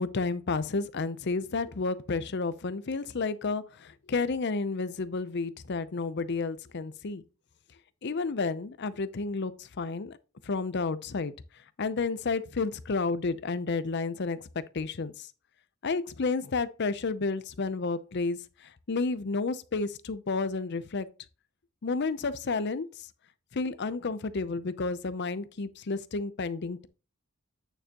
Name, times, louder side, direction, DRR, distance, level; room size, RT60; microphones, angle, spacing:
voice 1, 0.0-7.2 8.0-10.2 10.4-11.3 11.8-15.3 15.8-18.4 18.9-21.1 21.8-22.9 23.5-26.9, left 4 dB, 50° left, 0.6 m, -31 dB
9.1 x 6.8 x 2.9 m
head